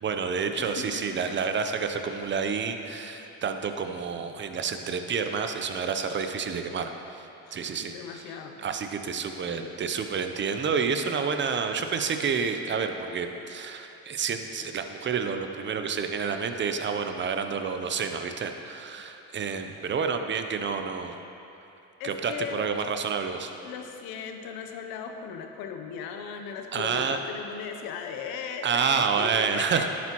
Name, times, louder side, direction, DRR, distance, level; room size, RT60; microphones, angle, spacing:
voice 1, 0.0-21.2 22.0-23.5 26.7-27.2 28.6-29.9, right 6 dB, 30° right, 6 dB, 0.6 m, -29 dB
voice 2, 0.6-1.4 7.4-7.6 7.9-8.7 9.4-9.8 22.0-22.6 23.6-29.9, left 7 dB, 80° left, 5 dB, 0.9 m, -37 dB
10.5 x 8.4 x 3.0 m, 2.8 s
cardioid pair, 100°, 35 cm